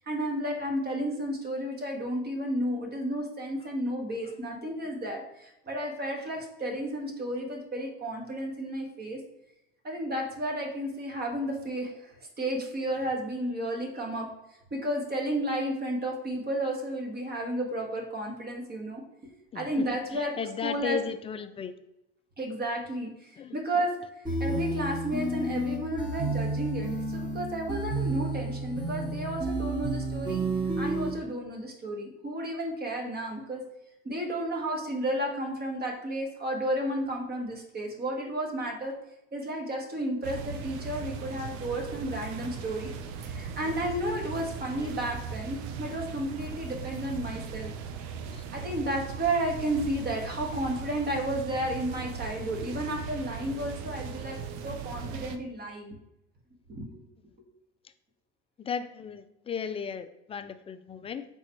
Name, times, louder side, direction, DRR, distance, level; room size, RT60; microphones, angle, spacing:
voice 1, 0.0-9.2 9.8-14.3 14.7-19.0 19.5-21.0 22.4-24.0 24.4-30.4 30.8-33.6 34.0-39.0 39.3-42.9 43.2-47.7 48.5-54.4 54.6-56.0 56.7-57.0, right 1 dB, 30° right, 1 dB, 1.4 m, -32 dB
voice 2, 19.5-19.9 20.4-21.7 23.4-23.6 44.8-44.9 48.3-48.4 58.6-61.3, left 7 dB, 20° left, 11 dB, 0.3 m, -35 dB
sound 1, 24.2-31.1, right 2 dB, 15° right, 1.3 m, -31 dB
sound 2, 40.2-55.4, right 6 dB, 60° right, 0.6 m, -38 dB
4.2 x 3.8 x 3.1 m, 0.87 s
hypercardioid pair, 75°, 32 cm